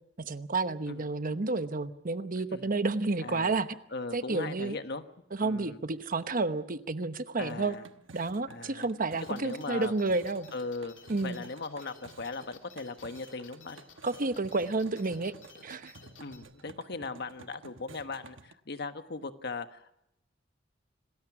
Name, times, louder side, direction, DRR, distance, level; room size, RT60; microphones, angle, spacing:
voice 1, 0.2-3.8 4.1-4.8 5.3-7.8 8.1-10.5 11.1-11.4 14.0-15.3 15.6-15.9, right 3 dB, 45° right, 11 dB, 1.0 m, -30 dB
voice 2, 3.2-3.6 3.9-5.0 5.4-5.8 7.4-7.8 8.5-8.9 9.3-9.9 10.5-13.8 16.2-19.9, left 3 dB, 60° left, 9 dB, 1.3 m, -39 dB
sound 1, 7.5-18.5, right 3 dB, 90° right, 1.2 m, -53 dB
sound 2, 9.2-16.4, left 5 dB, 80° left, 3.1 m, -55 dB
27.0 x 20.0 x 6.0 m, 0.81 s
head